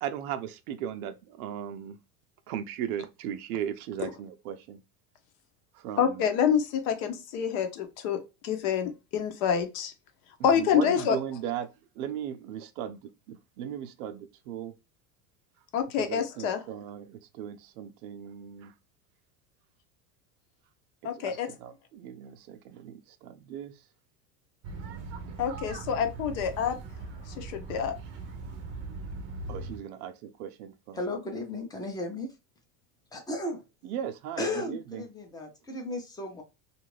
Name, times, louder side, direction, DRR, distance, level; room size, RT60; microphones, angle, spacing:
voice 1, 0.0-2.0 2.5-4.8 5.7-6.3 10.4-14.7 16.0-18.7 21.0-23.8 29.5-31.1 33.8-35.0, right 9 dB, 85° right, 0.6 m, -37 dB
voice 2, 6.0-9.9 10.4-11.2 15.7-16.6 21.0-21.5 25.4-26.8 27.3-27.9, left 8 dB, 65° left, 0.9 m, -27 dB
sound 1, 24.6-29.8, right 3 dB, 35° right, 0.6 m, -40 dB
voice 3, 30.9-32.3 33.1-33.6 34.4-36.4, left 2 dB, 10° left, 0.5 m, -34 dB
2.6 x 2.4 x 3.1 m
supercardioid pair, 140°, 43 cm